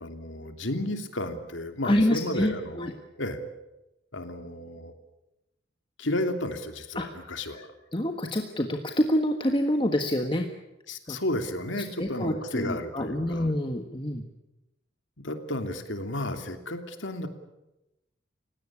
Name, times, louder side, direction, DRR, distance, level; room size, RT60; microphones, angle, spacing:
voice 1, 0.0-2.9 3.2-3.4 4.1-4.9 6.0-7.7 10.9-13.5 15.2-17.3, left 1 dB, 80° left, 7 dB, 2.9 m, -32 dB
voice 2, 1.8-2.9 6.9-7.1 7.9-10.5 11.1-11.2 11.8-14.2, left 1 dB, 25° left, 4 dB, 1.5 m, -27 dB
30.0 x 17.5 x 8.7 m, 0.97 s
head